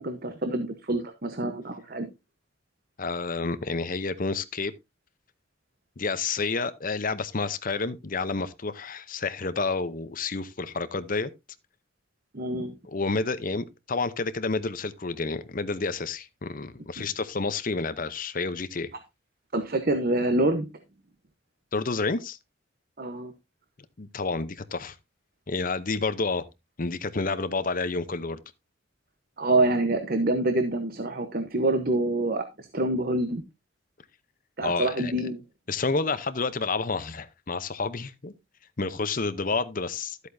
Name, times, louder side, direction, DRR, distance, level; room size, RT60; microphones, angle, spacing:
voice 1, 0.0-2.1 12.3-12.8 17.0-17.1 19.5-20.7 23.0-23.3 29.4-33.4 34.6-35.4, right 2 dB, 45° right, 1.0 m, -26 dB
voice 2, 3.0-4.7 6.0-11.3 12.9-18.9 21.7-22.4 24.0-25.0 25.5-26.5 26.8-28.4 34.6-35.1 35.7-38.3 38.8-40.3, left 3 dB, 40° left, 0.8 m, -29 dB
12.5 x 8.2 x 2.7 m
head